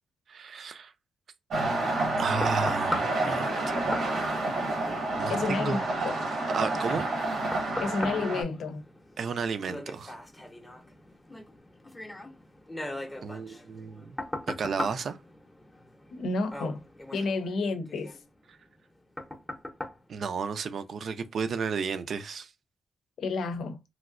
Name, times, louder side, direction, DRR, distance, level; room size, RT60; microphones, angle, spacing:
voice 1, 0.3-0.9 2.2-3.5 5.2-6.1 6.5-7.1 9.2-10.1 13.2-14.0 14.6-15.2 20.1-22.5, right 5 dB, 60° right, 0.4 m, -32 dB
sound 1, 1.5-8.4, right 2 dB, 85° right, 1.1 m, -29 dB
sound 2, 1.7-21.0 21.5-21.6, left 1 dB, 10° left, 0.6 m, -41 dB
voice 2, 5.3-5.8 6.0-6.2 7.8-8.8 16.1-16.8 17.1-18.2 23.2-23.8, left 3 dB, 80° left, 0.6 m, -30 dB
3.1 x 2.7 x 2.5 m
wide cardioid pair, 130°, 0 cm